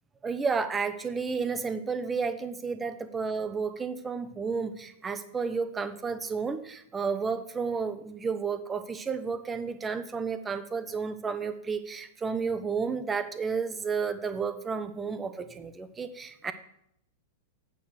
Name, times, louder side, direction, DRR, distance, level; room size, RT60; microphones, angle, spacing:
voice 1, 0.2-16.5, right 5 dB, 20° right, 11 dB, 0.9 m, -32 dB
8.4 x 6.1 x 6.5 m, 0.74 s
figure-of-eight pair, 95°, 0 cm